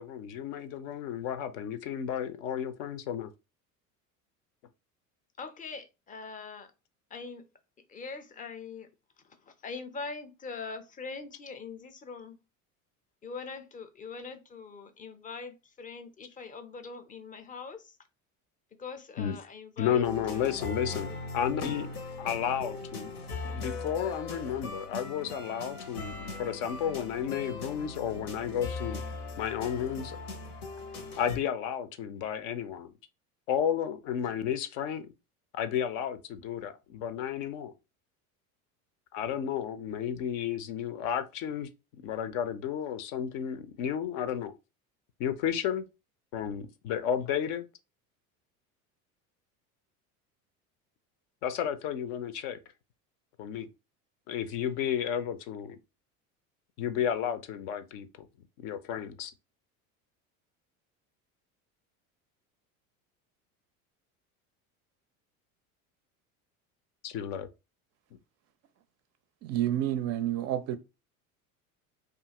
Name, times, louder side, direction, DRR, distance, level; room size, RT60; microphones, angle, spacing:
voice 1, 0.0-3.3 19.2-19.4 19.8-23.2 23.4-29.0 29.4-30.2 31.2-32.9 33.5-35.1 35.5-37.7 39.1-41.7 42.0-44.5 45.2-45.8 46.3-47.6 51.4-52.6 53.4-53.7 54.3-55.8 56.8-58.3 58.6-59.3 67.0-67.5, left 9 dB, 65° left, 0.6 m, -32 dB
voice 2, 5.4-6.7 7.1-7.4 7.9-8.9 9.2-12.4 13.2-18.0 18.8-20.5 21.1-21.2, left 4 dB, 20° left, 0.5 m, -42 dB
sound 1, 20.0-31.4, left 3 dB, 90° left, 0.9 m, -39 dB
voice 3, 69.4-70.8, right 12 dB, 40° right, 0.4 m, -29 dB
2.7 x 2.4 x 2.8 m
hypercardioid pair, 80°, 43 cm